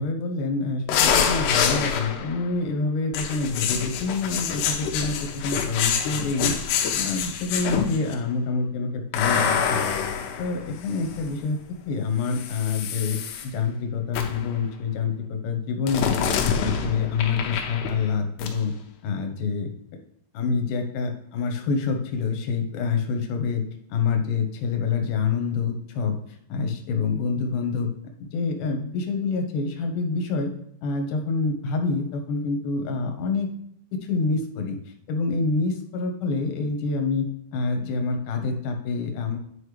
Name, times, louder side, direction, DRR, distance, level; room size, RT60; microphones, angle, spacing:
voice 1, 0.0-9.8 10.4-11.6 11.9-16.1 16.4-18.7 19.0-19.7 20.3-23.6 23.9-27.9 28.2-30.5 30.8-33.5 33.9-34.8 35.1-37.3 37.5-39.4, left 4 dB, 65° left, 4 dB, 2.3 m, -27 dB
sound 1, 0.9-2.4 3.1-8.1 9.1-11.3 12.3-13.5 14.1-14.5 15.9-18.1 18.4-18.6, left 7 dB, 90° left, 2.9 m, -26 dB
10.0 x 5.3 x 3.2 m, 0.70 s
omnidirectional pair, 4.8 m